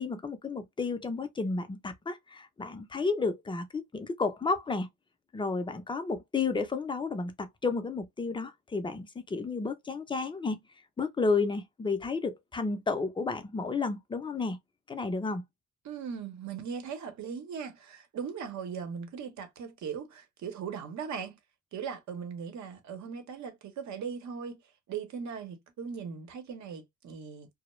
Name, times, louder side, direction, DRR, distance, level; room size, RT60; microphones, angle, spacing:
voice 1, 0.0-4.9 5.3-10.6 11.0-14.6 14.9-15.4, left 4 dB, 15° left, 0.5 m, -32 dB
voice 2, 15.8-21.4 21.7-24.6 24.9-27.5, right 6 dB, 65° right, 0.8 m, -39 dB
2.2 x 2.0 x 2.9 m
cardioid pair, 90°, 30 cm